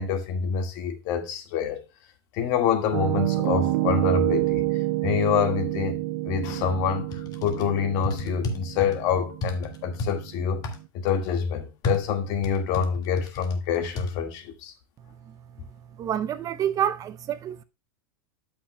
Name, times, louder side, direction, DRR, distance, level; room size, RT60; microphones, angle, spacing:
voice 1, 0.0-1.8 2.3-4.7 5.0-6.0 6.2-10.6 10.9-14.7, left 7 dB, 55° left, 1.8 m, -26 dB
Piano, 2.9-10.8, right 18 dB, 70° right, 0.6 m, -28 dB
sound 1, 7.1-7.7 8.0-9.0 9.4-10.1 10.6-10.8 11.8-13.6 14.0-14.1, left 2 dB, 35° left, 1.7 m, -31 dB
voice 2, 16.0-17.6, right 10 dB, 30° right, 0.4 m, -28 dB
12.5 x 6.0 x 2.2 m
supercardioid pair, 135°, 12 cm